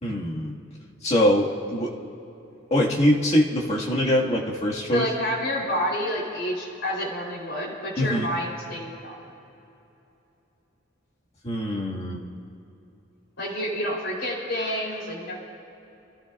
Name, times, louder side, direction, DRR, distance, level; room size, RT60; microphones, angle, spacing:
voice 1, 0.0-0.5 1.0-2.0 2.7-5.1 8.0-8.3 11.4-12.2, equal, 35° left, -3 dB, 1.8 m, -23 dB
voice 2, 4.9-9.2 13.4-15.4, equal, 65° left, -6 dB, 3.7 m, -29 dB
28.5 x 14.0 x 2.5 m, 2.9 s
head